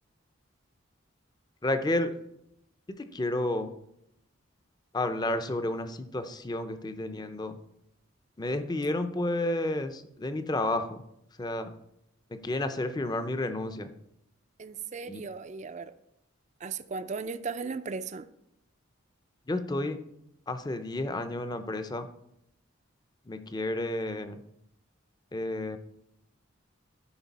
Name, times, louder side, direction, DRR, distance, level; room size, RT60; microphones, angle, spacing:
voice 1, 1.6-2.1 2.9-3.7 4.9-7.6 8.4-11.0 11.4-11.7 12.3-13.9 15.1-15.2 19.5-20.0 20.5-22.1 23.3-24.4 25.3-25.8, left 1 dB, 20° left, 9 dB, 0.6 m, -31 dB
voice 2, 14.6-15.9 16.6-18.3, right 5 dB, 35° right, 12 dB, 0.4 m, -36 dB
13.0 x 5.1 x 4.1 m, 0.80 s
head